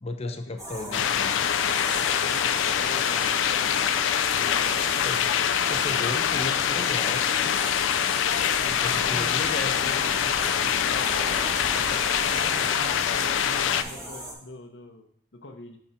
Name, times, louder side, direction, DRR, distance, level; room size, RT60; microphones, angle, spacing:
voice 1, 0.0-1.4 5.0-5.3 5.6-7.3 8.8-10.0, left 2 dB, 35° left, 6 dB, 0.6 m, -35 dB
sound 1, 0.6-14.3, right 1 dB, 15° right, 1.2 m, -37 dB
voice 2, 0.8-1.1 1.9-3.7 4.3-4.8 5.4-6.1 8.6-11.1 11.7-15.8, left 2 dB, 70° left, 5 dB, 0.8 m, -43 dB
sound 2, 0.9-13.8, left 9 dB, 85° left, 0.3 m, -25 dB
sound 3, 2.3-14.0, equal, 50° right, 0.9 m, -46 dB
5.7 x 3.8 x 5.5 m, 0.66 s
head